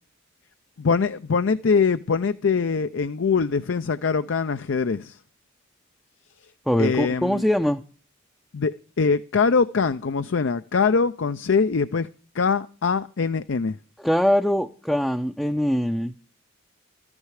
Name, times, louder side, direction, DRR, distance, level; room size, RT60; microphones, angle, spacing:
voice 1, 0.8-5.2 6.8-7.4 8.5-12.1 12.3-13.8, left 5 dB, 60° left, 0.5 m, -23 dB
voice 2, 6.7-7.8 14.0-16.1, equal, ahead, 0.5 m, -22 dB
13.5 x 9.7 x 4.8 m
head